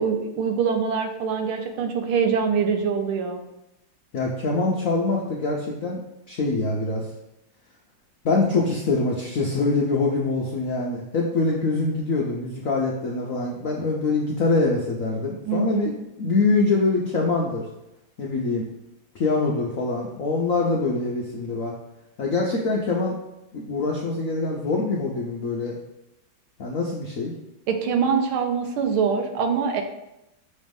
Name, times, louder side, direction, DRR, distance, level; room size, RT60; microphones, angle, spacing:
voice 1, 0.0-3.4 15.5-15.9 27.7-29.8, right 6 dB, 80° right, 5 dB, 1.6 m, -24 dB
voice 2, 4.1-6.0 6.3-7.1 8.2-15.9 16.2-17.7 18.2-18.7 19.1-21.8 22.2-23.2 23.5-25.8 26.6-27.3, left 3 dB, 70° left, -2 dB, 0.8 m, -24 dB
6.9 x 3.2 x 5.2 m, 0.89 s
omnidirectional pair, 2.3 m